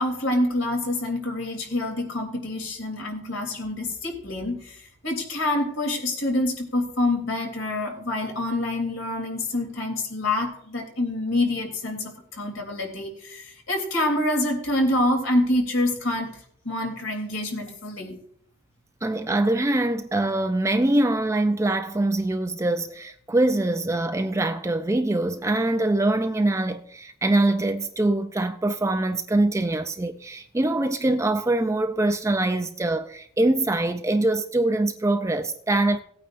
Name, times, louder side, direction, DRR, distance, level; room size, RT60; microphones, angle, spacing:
voice 1, 0.0-4.8 5.0-16.4 16.6-18.2, left 1 dB, 65° left, 3.1 m, -26 dB
voice 2, 19.0-36.0, right 2 dB, 15° right, 0.4 m, -23 dB
18.0 x 9.0 x 2.6 m
head